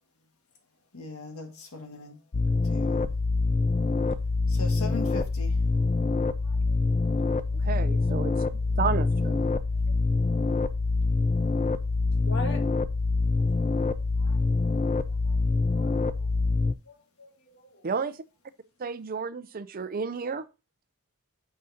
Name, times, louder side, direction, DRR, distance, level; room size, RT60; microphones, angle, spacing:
voice 1, 0.9-2.2 2.6-3.1 4.5-5.6, left 3 dB, 90° left, 1.8 m, -39 dB
sound 1, 2.3-16.7, left 3 dB, 35° left, 0.5 m, -25 dB
voice 2, 6.4-6.8 7.5-8.6 9.9-10.0 12.2-12.6 13.5-14.5 15.2-15.4 15.8-16.6 16.9-17.9, left 2 dB, 55° left, 1.8 m, -44 dB
voice 3, 7.6-9.5 17.8-18.2 18.8-20.5, right 5 dB, 45° right, 0.5 m, -32 dB
9.2 x 6.5 x 2.8 m
head